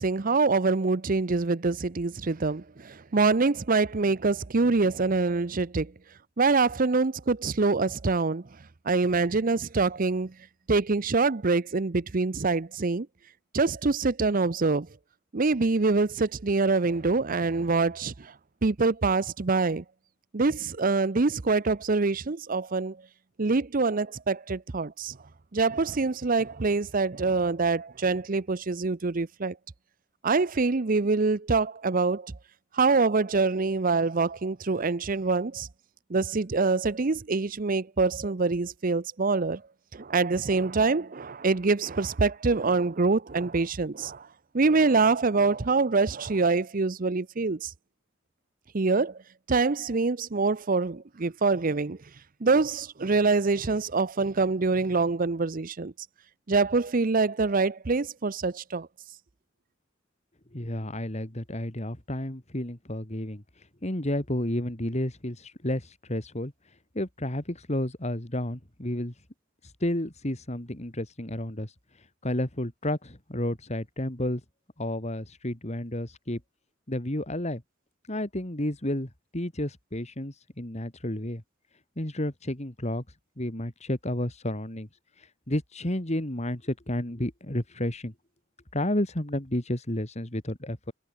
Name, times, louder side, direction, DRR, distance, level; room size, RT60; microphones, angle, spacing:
voice 1, 0.0-5.9 6.4-8.4 8.9-10.3 10.7-13.1 13.5-14.9 15.3-18.3 18.6-19.8 20.3-23.0 23.4-25.2 25.5-29.6 30.2-32.3 32.7-35.7 36.1-39.6 39.9-44.3 44.5-47.7 48.7-49.2 49.5-52.0 52.4-55.9 56.5-58.9, right 3 dB, 45° right, 0.7 m, -25 dB
voice 2, 60.5-69.1 69.6-74.4 74.8-76.4 76.9-77.6 78.1-81.4 82.0-83.0 83.4-84.9 85.2-88.1 88.7-90.9, left 1 dB, 35° left, 2.9 m, -31 dB
head